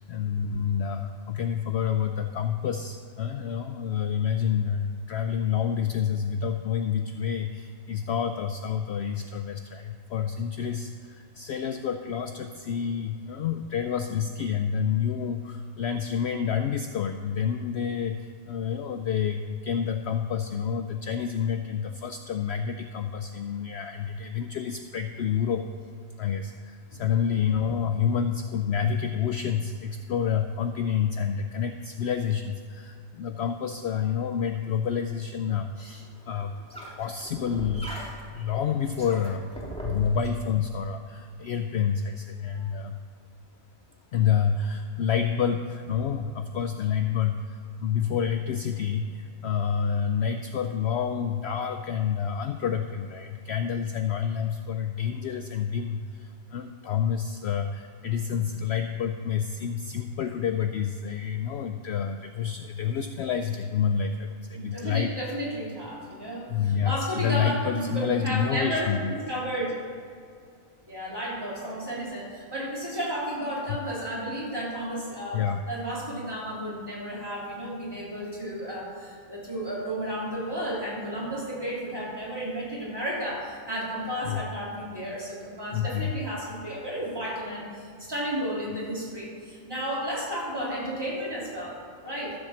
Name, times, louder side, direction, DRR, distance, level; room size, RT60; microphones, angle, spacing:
voice 1, 0.1-25.7 26.2-36.5 37.0-37.9 38.3-39.5 39.8-43.0 44.1-65.1 66.5-69.2 75.3-75.6 84.2-84.4 85.7-86.1, left 7 dB, 65° left, 7 dB, 0.7 m, -28 dB
sound 1, 35.9-40.3, right 1 dB, 5° left, 1.9 m, -40 dB
voice 2, 64.5-69.7 70.9-92.3, equal, 15° right, -7 dB, 3.4 m, -33 dB
13.5 x 5.7 x 7.0 m, 2.3 s
omnidirectional pair, 1.4 m